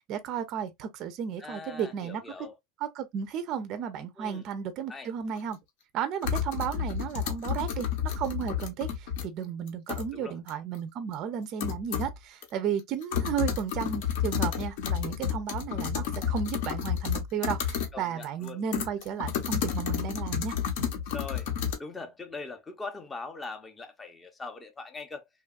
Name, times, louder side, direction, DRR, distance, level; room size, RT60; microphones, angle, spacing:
voice 1, 0.1-2.2 2.8-5.6 5.9-20.6, right 8 dB, 40° right, 0.4 m, -34 dB
voice 2, 1.4-2.6 4.2-4.5 4.9-5.1 10.1-10.4 17.9-18.6 21.1-21.5 21.8-25.3, left 3 dB, 15° left, 0.5 m, -41 dB
sound 1, 5.4-5.5 6.2-9.2 9.7-10.1 10.5-10.6 11.1-11.2 11.6-12.2 12.4-12.5 12.8-17.9 18.2-21.7, left 8 dB, 65° left, 0.7 m, -31 dB
2.8 x 2.3 x 2.3 m
supercardioid pair, 155°, 0 cm